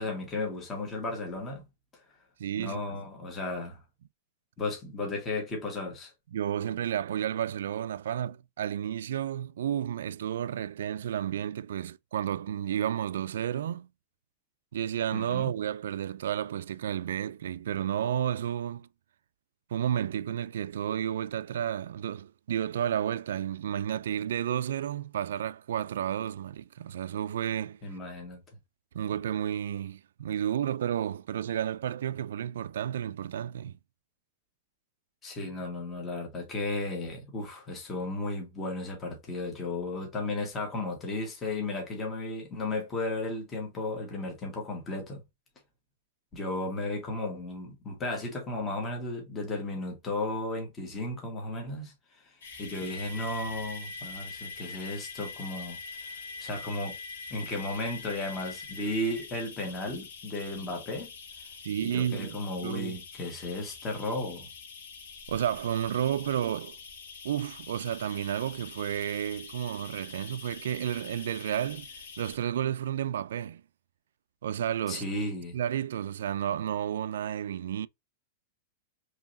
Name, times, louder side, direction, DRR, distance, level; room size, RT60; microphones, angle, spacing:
voice 1, 0.0-1.6 1.9-2.0 2.6-3.8 4.6-6.1 15.1-15.5 27.8-28.4 35.2-45.2 46.3-55.8 56.4-57.0 57.3-61.1 61.8-64.5 74.9-75.5, left 2 dB, 15° left, 1.2 m, -34 dB
voice 2, 2.4-2.8 6.3-13.9 14.7-18.9 19.7-27.8 28.9-33.8 52.8-52.9 61.6-63.0 65.3-66.8 67.2-73.6 74.4-75.0 75.5-77.9, right 10 dB, 80° right, 0.3 m, -32 dB
sound 1, 52.4-72.4, left 4 dB, 85° left, 1.5 m, -44 dB
4.6 x 3.1 x 2.6 m
supercardioid pair, 165°, 0 cm